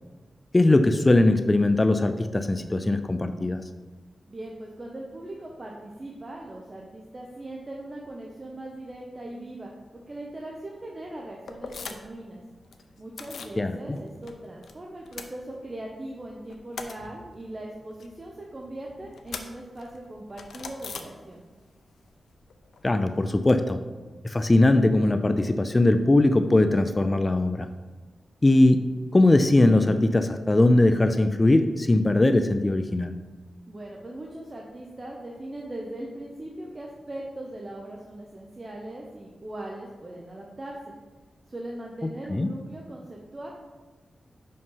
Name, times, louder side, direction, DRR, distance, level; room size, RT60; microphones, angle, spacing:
voice 1, 0.5-3.6 13.6-13.7 22.8-23.8 24.2-27.7 28.4-28.9 29.1-33.2 42.3-42.5, left 2 dB, 20° left, 9 dB, 0.3 m, -20 dB
voice 2, 4.3-12.4 13.0-21.4 33.7-40.9 41.5-43.5, right 1 dB, 30° right, -1 dB, 0.7 m, -40 dB
sound 1, 11.5-12.2 12.5-13.6 13.9-14.7 15.0-16.0 16.3-21.7 21.9-23.6, left 5 dB, 90° left, 0.6 m, -42 dB
5.4 x 5.3 x 5.5 m, 1.3 s
wide cardioid pair, 120°, 0 cm